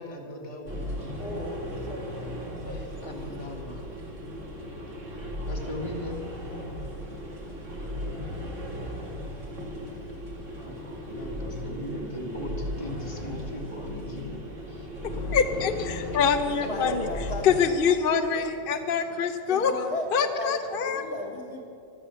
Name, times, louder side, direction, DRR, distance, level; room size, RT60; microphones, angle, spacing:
voice 1, 0.0-1.2 2.7-3.9 5.5-6.2 10.6-14.9 15.5-15.7 16.6-16.7 19.2-19.3 20.3-20.4, left 1 dB, 20° left, 1 dB, 1.7 m, -39 dB
sound 1, 0.7-17.7, equal, 55° right, 2.7 m, -36 dB
voice 2, 1.2-2.3 2.6-3.1 16.4-17.5 19.5-20.5 20.8-21.6, left 1 dB, 85° left, 2 dB, 2.9 m, -35 dB
voice 3, 15.0-17.1 17.4-19.7 20.1-21.0, left 6 dB, 50° left, 7 dB, 0.8 m, -25 dB
15.0 x 12.5 x 6.9 m, 2.6 s
omnidirectional pair, 1.6 m